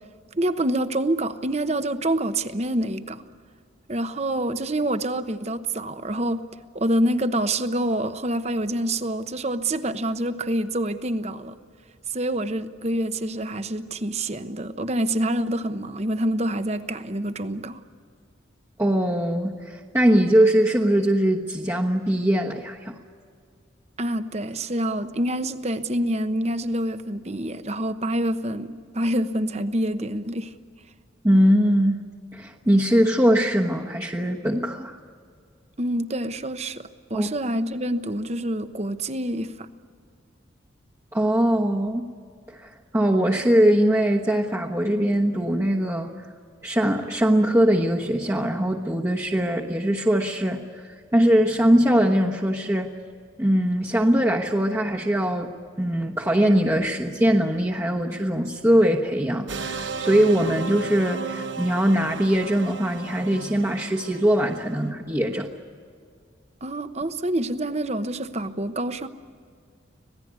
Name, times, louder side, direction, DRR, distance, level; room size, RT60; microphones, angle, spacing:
voice 1, 0.3-3.2 3.9-6.4 6.7-11.5 12.1-17.8 24.0-30.5 35.8-39.7 66.6-69.1, right 1 dB, 35° right, 11 dB, 1.0 m, -26 dB
voice 2, 18.8-23.0 31.2-32.0 32.3-35.0 37.1-37.3 41.1-42.1 42.5-46.1 46.6-52.9 53.4-55.5 55.8-65.5, equal, 15° right, -2 dB, 1.2 m, -21 dB
sound 1, 59.5-64.8, right 5 dB, 70° right, 1.3 m, -35 dB
26.0 x 18.5 x 9.5 m, 2.2 s
head